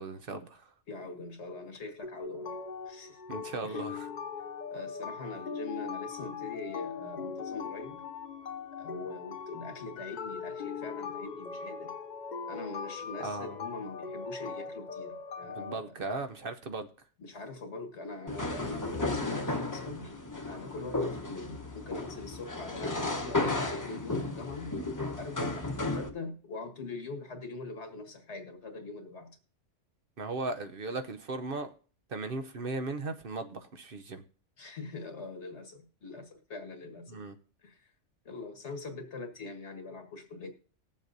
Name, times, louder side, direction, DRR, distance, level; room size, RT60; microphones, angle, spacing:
voice 1, 0.0-0.7 3.3-4.1 13.2-13.6 15.5-16.9 30.2-31.7 32.1-34.2 37.1-37.3, right 3 dB, 55° right, 8 dB, 0.8 m, -37 dB
voice 2, 0.9-2.6 2.9-3.2 3.6-3.8 4.7-8.0 8.8-11.9 12.5-15.9 17.2-20.1 20.5-24.7 25.2-29.4 34.6-37.2 37.6-37.9 38.3-40.5, left 3 dB, 65° left, 5 dB, 1.8 m, -42 dB
sound 1, 2.0-15.7, left 6 dB, 50° left, 0.6 m, -40 dB
sound 2, 18.3-26.1, left 2 dB, 15° left, 1.0 m, -34 dB
20.0 x 7.3 x 2.6 m, 0.40 s
omnidirectional pair, 1.2 m